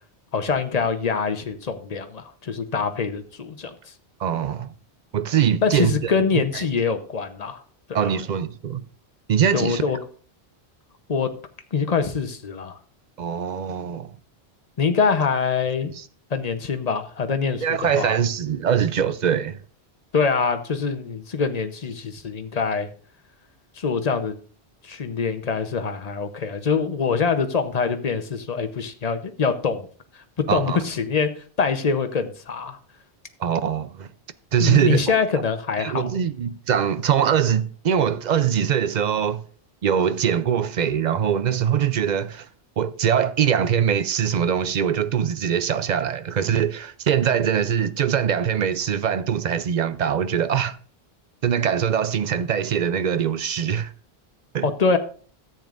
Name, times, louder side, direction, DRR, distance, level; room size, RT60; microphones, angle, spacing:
voice 1, 0.3-3.9 5.6-7.6 7.9-8.1 9.5-10.0 11.1-11.3 11.7-12.8 14.8-15.9 16.3-18.1 20.1-22.9 23.8-24.3 24.8-29.9 30.1-31.3 31.6-32.8 34.6-36.1 54.6-55.0, left 5 dB, 40° left, 0.9 m, -24 dB
voice 2, 4.2-4.7 5.1-6.1 6.5-6.6 7.9-8.9 9.3-9.8 13.2-14.1 16.0-16.1 17.6-19.6 30.5-30.8 33.4-34.1 34.5-35.1 35.8-39.4 39.8-42.5 42.8-50.8 51.4-53.9 54.5-54.7, right 8 dB, 50° right, 0.6 m, -22 dB
13.5 x 8.9 x 2.5 m
omnidirectional pair, 1.1 m